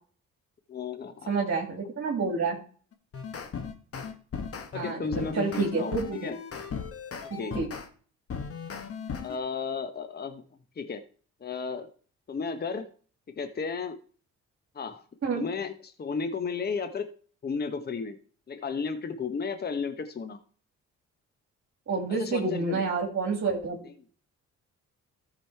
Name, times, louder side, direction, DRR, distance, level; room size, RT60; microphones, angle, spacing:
voice 1, 0.7-1.3 4.7-6.4 7.2-7.6 9.2-10.4 10.8-11.0 11.4-11.9 12.3-12.9 13.4-14.0 14.7-15.0 15.4-17.1 17.4-18.2 18.5-20.4 22.1-22.8 23.8-23.9, left 5 dB, 30° left, 9 dB, 1.1 m, -33 dB
voice 2, 1.3-2.6 4.7-6.3 7.3-7.7 15.2-15.5 21.9-23.9, right 4 dB, 45° right, 2 dB, 2.2 m, -29 dB
sound 1, 2.9-7.9 8.3-9.4, left 6 dB, 50° left, 1.7 m, -37 dB
13.5 x 5.1 x 4.5 m, 0.42 s
cardioid pair, 90°, 30 cm